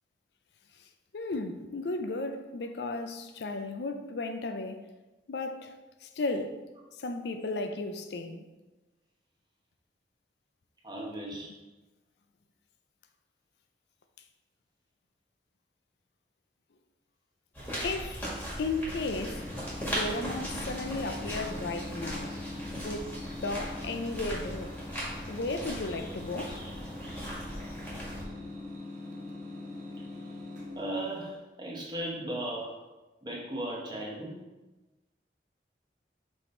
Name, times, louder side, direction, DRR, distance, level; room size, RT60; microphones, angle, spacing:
voice 1, 1.1-4.9 5.3-5.7 6.0-6.6 6.9-8.4 17.8-18.3 18.6-19.5 19.9-22.4 22.7-23.1 23.4-24.7 25.3-26.6, left 2 dB, 75° left, 0.5 m, -34 dB
voice 2, 10.8-11.5 30.8-32.7 33.2-34.4, right 1 dB, 25° right, 1.1 m, -36 dB
sound 1, 17.5-28.2, equal, 10° left, 1.7 m, -38 dB
sound 2, 19.0-31.3, left 2 dB, 45° right, 1.4 m, -43 dB
6.2 x 3.5 x 4.4 m
head